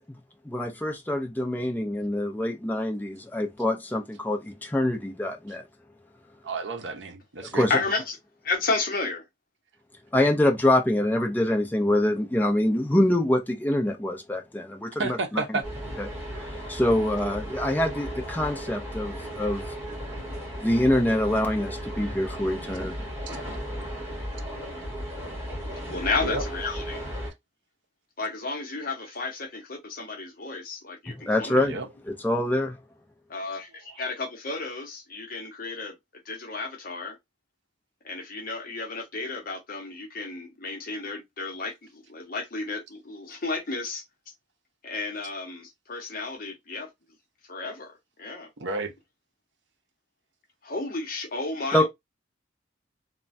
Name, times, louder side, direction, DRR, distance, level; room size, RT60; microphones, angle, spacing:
voice 1, 0.4-5.6 7.5-7.7 10.1-15.2 16.0-16.1 16.7-19.7 20.6-23.1 31.2-31.8 32.2-32.8 51.7-51.9, left 1 dB, 10° left, 0.4 m, -25 dB
voice 2, 6.4-7.8 15.0-15.7 23.3-23.4 26.2-26.4 27.3-27.4 31.6-31.9 33.9-34.0 48.6-48.9, right 3 dB, 70° right, 0.6 m, -31 dB
voice 3, 7.7-8.2 8.4-9.2 25.9-27.0 28.2-31.7 33.3-35.9 36.3-37.2 38.0-44.0 44.8-46.9 47.5-47.9 48.2-48.5 50.6-51.9, left 3 dB, 45° left, 0.8 m, -32 dB
sound 1, 15.6-27.3, equal, 10° right, 1.9 m, -35 dB
3.2 x 2.2 x 2.5 m
head